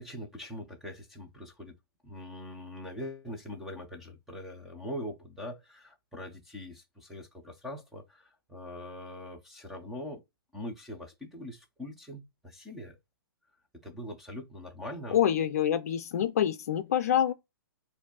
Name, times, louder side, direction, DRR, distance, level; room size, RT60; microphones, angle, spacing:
voice 1, 0.0-1.7 2.0-10.2 10.5-13.0 13.8-15.2, left 1 dB, ahead, 0.6 m, -42 dB
voice 2, 15.1-17.3, left 10 dB, 40° left, 0.6 m, -26 dB
4.7 x 2.7 x 4.1 m
hypercardioid pair, 175°, 13 cm